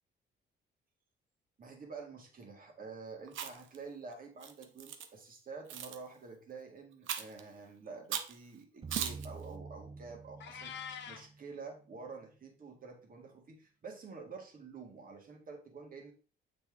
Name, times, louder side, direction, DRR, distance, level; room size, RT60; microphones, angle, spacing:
voice 1, 1.6-10.8 11.1-16.1, right 4 dB, 45° right, 3 dB, 1.8 m, -48 dB
Chewing mastication, 3.3-3.8 4.4-5.1 5.7-6.0 7.1-7.4 8.1-8.4 8.9-9.3, right 9 dB, 80° right, 0.7 m, -38 dB
sound 1, 8.8-11.9, right 5 dB, 25° right, 0.4 m, -48 dB
Meow, 10.4-11.3, left 7 dB, 65° left, 0.9 m, -44 dB
6.9 x 4.3 x 3.5 m, 0.38 s
cardioid pair, 90°, 20 cm